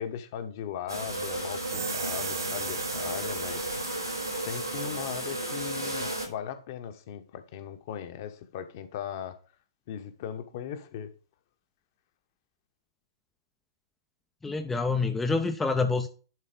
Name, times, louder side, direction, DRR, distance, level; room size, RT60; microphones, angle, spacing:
voice 1, 0.0-3.6 4.4-9.4 9.9-11.1, left 9 dB, 45° left, 1.2 m, -38 dB
sound 1, 0.9-6.3, right 1 dB, 85° right, 4.1 m, -33 dB
sound 2, 1.5-5.2, right 6 dB, 60° right, 1.9 m, -39 dB
voice 2, 14.4-16.1, left 4 dB, 10° left, 0.6 m, -27 dB
11.0 x 4.2 x 5.1 m
figure-of-eight pair, 110°, 2 cm